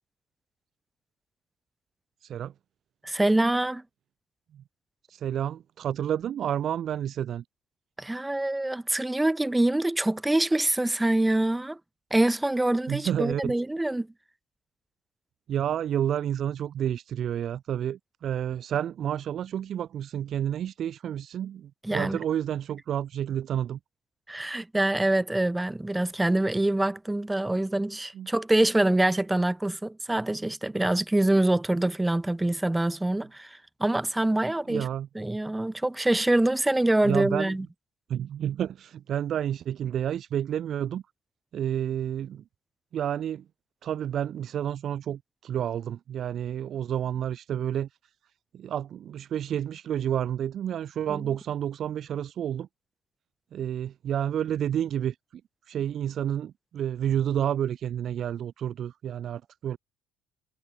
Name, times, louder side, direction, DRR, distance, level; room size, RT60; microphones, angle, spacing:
voice 1, 2.2-2.5 4.5-4.6 5.1-7.4 12.9-13.5 15.5-23.8 28.1-28.3 34.7-35.1 37.0-37.5 38.1-41.0 41.5-42.4 42.9-43.4 43.8-47.9 48.5-52.7 53.5-55.4 55.7-59.8, right 10 dB, 45° right, 0.9 m, -30 dB
voice 2, 3.0-3.8 8.0-11.8 12.1-14.1 21.8-22.2 24.3-34.9 35.1-37.6 51.1-51.2, right 1 dB, 5° right, 1.5 m, -25 dB
cardioid pair, 135°, 0 cm